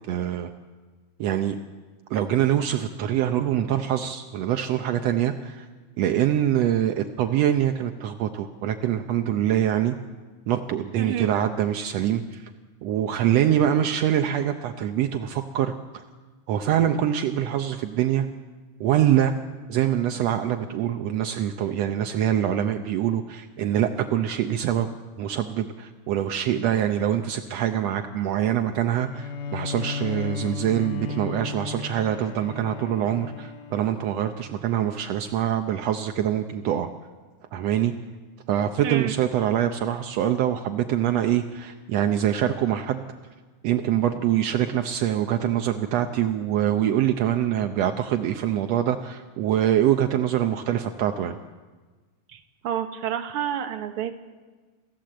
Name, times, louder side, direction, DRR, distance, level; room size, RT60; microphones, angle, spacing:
voice 1, 0.1-0.5 1.2-1.6 2.1-5.7 6.0-9.9 10.5-12.4 12.8-16.0 16.5-18.3 18.8-19.3 19.7-24.9 25.2-36.9 37.5-37.9 38.5-43.0 43.6-51.4, right 10 dB, 75° right, 6 dB, 1.5 m, -24 dB
voice 2, 11.0-11.3 38.8-39.2 52.3-54.1, right 9 dB, 55° right, 6 dB, 1.7 m, -29 dB
Bowed string instrument, 29.0-34.5, left 5 dB, 75° left, 2.7 m, -35 dB
28.5 x 15.5 x 7.7 m, 1.4 s
omnidirectional pair, 4.0 m